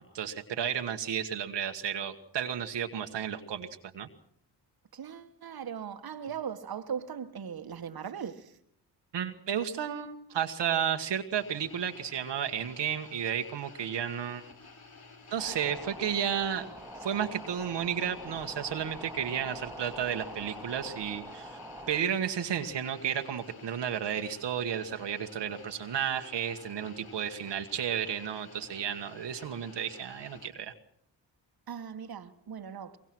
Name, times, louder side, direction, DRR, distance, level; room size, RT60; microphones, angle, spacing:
voice 1, 0.0-3.7 3.9-4.1 9.1-14.4 15.3-16.6 17.0-21.6 21.9-30.7, right 8 dB, 75° right, 1.5 m, -32 dB
voice 2, 4.9-8.6 31.7-33.0, right 7 dB, 55° right, 1.6 m, -39 dB
sound 1, 11.3-30.5, left 4 dB, 55° left, 4.2 m, -52 dB
sound 2, 15.4-22.0, equal, 5° right, 2.0 m, -45 dB
23.5 x 23.0 x 6.1 m
supercardioid pair, 55°, 43 cm